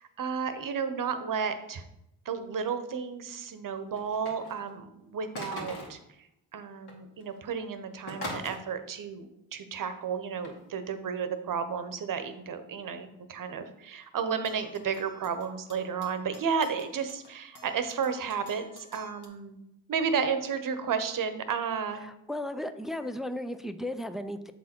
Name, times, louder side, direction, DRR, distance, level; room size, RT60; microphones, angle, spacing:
voice 1, 0.0-1.8 2.2-6.0 6.5-19.6 19.9-22.1, right 6 dB, 50° right, 9 dB, 0.9 m, -32 dB
sound 1, 3.9-4.7 5.4-6.0 6.9-7.0 7.2-7.5 8.1-8.6 10.4-10.6, left 1 dB, 60° left, 2.1 m, -39 dB
sound 2, 14.2-19.3, left 2 dB, 45° left, 1.6 m, -55 dB
voice 2, 22.0-24.5, left 1 dB, ahead, 10 dB, 0.4 m, -35 dB
7.1 x 4.0 x 4.4 m, 0.82 s
supercardioid pair, 55°, 42 cm